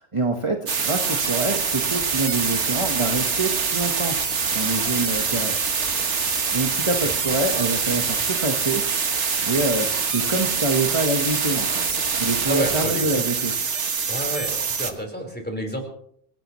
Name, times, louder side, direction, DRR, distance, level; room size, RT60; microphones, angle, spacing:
voice 1, 0.0-4.2 4.5-5.6 6.5-8.8 9.4-11.7 12.2-13.5, right 2 dB, 25° right, 3 dB, 1.3 m, -25 dB
sound 1, 0.7-14.9, right 5 dB, 80° right, 1.6 m, -24 dB
sound 2, 1.2-8.3, equal, 55° right, 8.4 m, -47 dB
voice 2, 12.4-13.2 14.1-15.8, right 1 dB, 10° left, 1 dB, 4.3 m, -30 dB
27.0 x 16.5 x 3.1 m, 0.66 s
omnidirectional pair, 1.2 m